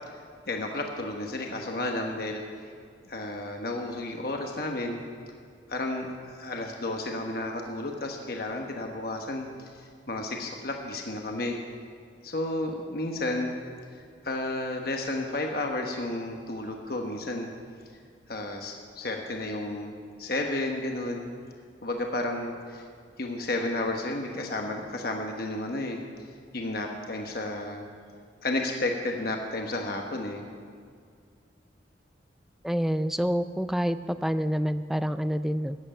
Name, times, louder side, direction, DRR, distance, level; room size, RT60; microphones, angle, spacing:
voice 1, 0.5-2.4 3.0-5.0 5.7-11.6 12.2-13.6 13.9-17.5 18.3-21.3 21.8-22.9 23.2-27.8 28.4-30.5, left 2 dB, 55° left, 2 dB, 1.1 m, -32 dB
voice 2, 32.6-35.8, equal, ahead, 12 dB, 0.3 m, -27 dB
14.0 x 7.9 x 8.8 m, 2.2 s
head